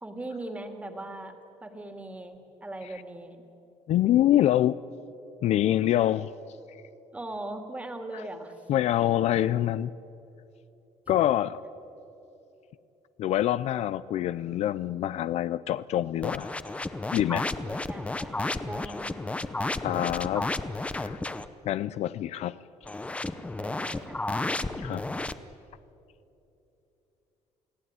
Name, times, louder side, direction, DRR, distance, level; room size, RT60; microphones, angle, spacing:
voice 1, 0.0-3.4 5.7-5.9 7.1-8.5 17.4-19.2 23.6-24.2, right 2 dB, 10° right, 2.3 m, -40 dB
voice 2, 3.9-4.8 5.4-6.3 8.7-9.9 11.1-11.6 13.2-16.5 17.1-17.5 19.8-20.5 20.9-21.2 21.7-22.6 24.8-25.0, left 12 dB, 60° left, 0.5 m, -25 dB
sound 1, 16.2-21.5 22.8-25.3, left 2 dB, 10° left, 0.7 m, -32 dB
28.5 x 18.0 x 9.6 m
cardioid pair, 150°, 12 cm